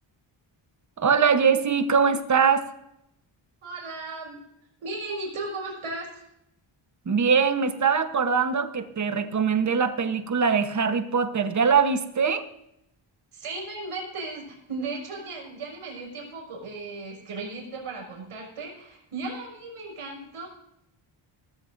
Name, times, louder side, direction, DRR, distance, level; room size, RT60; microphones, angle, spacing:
voice 1, 1.0-2.7 7.1-12.4, right 6 dB, 35° right, 9 dB, 1.1 m, -22 dB
voice 2, 3.6-4.4 4.8-6.2 13.3-20.5, right 3 dB, 85° right, 0 dB, 6.0 m, -36 dB
18.5 x 14.5 x 2.6 m, 0.80 s
wide cardioid pair, 160°, 50 cm